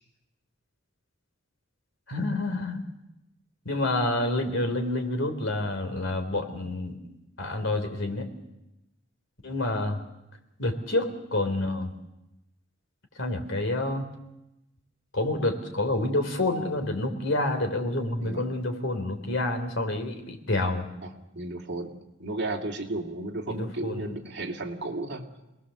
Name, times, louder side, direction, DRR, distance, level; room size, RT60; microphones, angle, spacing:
voice 1, 2.1-2.8 3.6-6.9 7.4-8.3 9.4-10.0 10.6-11.9 13.2-14.0 15.1-20.9 23.5-24.2, left 2 dB, 65° left, 6 dB, 3.5 m, -28 dB
voice 2, 21.0-21.9 22.2-25.2, right 2 dB, 55° right, 1 dB, 2.6 m, -34 dB
28.0 x 20.0 x 7.1 m, 0.94 s
head